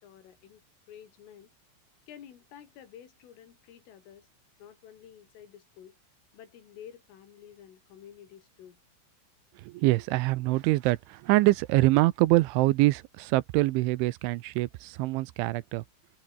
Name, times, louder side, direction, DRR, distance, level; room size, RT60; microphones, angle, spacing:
voice 1, 0.0-1.5 2.1-4.3 4.6-6.0 6.3-8.8, left 9 dB, 85° left, 5.7 m, -51 dB
voice 2, 9.6-15.8, right 19 dB, 80° right, 3.1 m, -25 dB
omnidirectional pair, 5.7 m